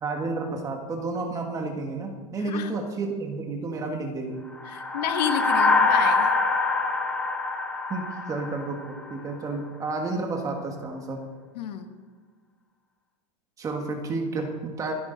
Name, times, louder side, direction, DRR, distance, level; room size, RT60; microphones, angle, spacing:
voice 1, 0.0-4.4 7.9-11.2 13.6-14.9, right 3 dB, 15° right, 3 dB, 1.6 m, -31 dB
voice 2, 2.4-2.8 4.6-6.3 11.5-11.9, left 9 dB, 85° left, 8 dB, 1.5 m, -30 dB
sound 1, 4.6-9.1, left 3 dB, 5° left, 0.8 m, -24 dB
27.0 x 10.5 x 4.0 m, 1.5 s
supercardioid pair, 165°, 21 cm